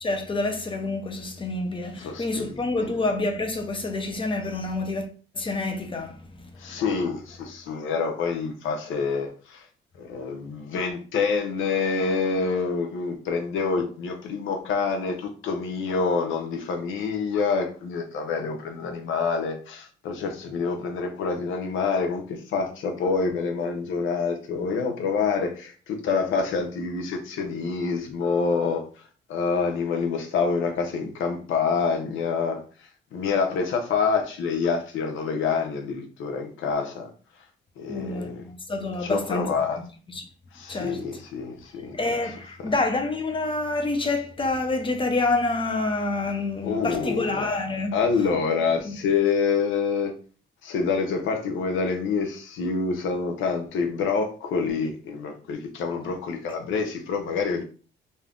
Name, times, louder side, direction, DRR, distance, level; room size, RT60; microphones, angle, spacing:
voice 1, 0.0-5.1 5.3-6.8 37.9-39.8 40.1-40.3 40.7-41.0 41.9-48.0 48.8-49.0, left 2 dB, 25° left, 0.7 m, -28 dB
voice 2, 2.0-2.9 6.6-9.6 10.0-28.9 29.3-32.6 33.1-37.1 37.8-38.4 39.0-39.8 40.5-42.0 42.6-42.7 46.6-47.4 47.9-50.1 50.6-57.6, left 5 dB, 80° left, 0.7 m, -27 dB
2.7 x 2.5 x 3.5 m
cardioid pair, 90°, 20 cm